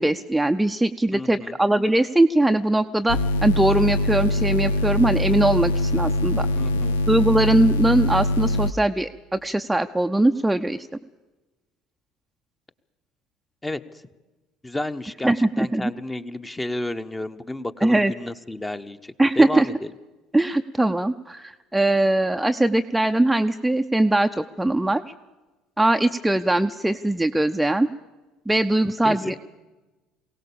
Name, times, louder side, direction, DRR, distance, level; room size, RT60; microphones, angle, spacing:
voice 1, 0.0-6.5 7.1-10.8 15.2-15.9 17.8-18.1 19.2-19.7 20.3-25.0 25.8-27.9 28.5-29.3, right 1 dB, 5° right, 6 dB, 0.7 m, -21 dB
voice 2, 1.1-1.6 6.5-7.0 13.6-13.8 14.6-19.8 28.8-29.3, left 1 dB, 15° left, 9 dB, 1.1 m, -31 dB
sound 1, 3.1-8.7, left 1 dB, 75° left, 0.6 m, -23 dB
22.5 x 17.5 x 7.0 m, 1.1 s
figure-of-eight pair, 60°, 0 cm